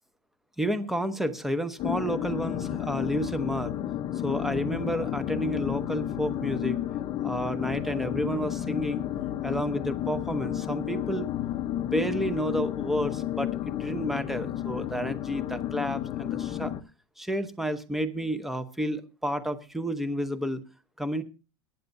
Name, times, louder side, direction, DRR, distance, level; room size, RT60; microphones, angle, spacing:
voice 1, 0.6-3.7 4.2-6.8 7.2-9.0 9.4-11.3 11.8-16.7 17.2-20.6 21.0-21.2, equal, ahead, 11 dB, 0.9 m, -30 dB
sound 1, 1.8-16.8, left 12 dB, 35° left, 0.7 m, -32 dB
22.5 x 9.2 x 2.7 m, 0.32 s
supercardioid pair, 140°, 15 cm